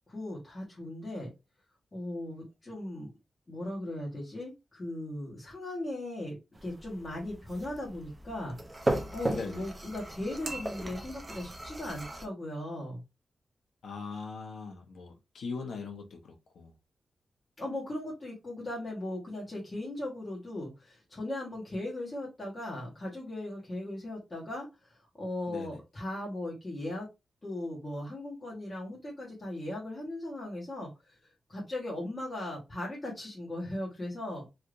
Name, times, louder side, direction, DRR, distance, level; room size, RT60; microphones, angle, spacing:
voice 1, 0.1-1.3 1.9-3.1 3.5-13.0 17.6-27.1 27.4-31.2 31.5-34.5, left 1 dB, 25° left, 1.2 m, -38 dB
sound 1, 6.5-12.3, right 1 dB, 20° right, 0.5 m, -37 dB
voice 2, 9.3-9.6 13.8-16.7 25.5-25.8, left 4 dB, 90° left, 0.8 m, -40 dB
3.3 x 2.7 x 2.4 m
wide cardioid pair, 170°, 0 cm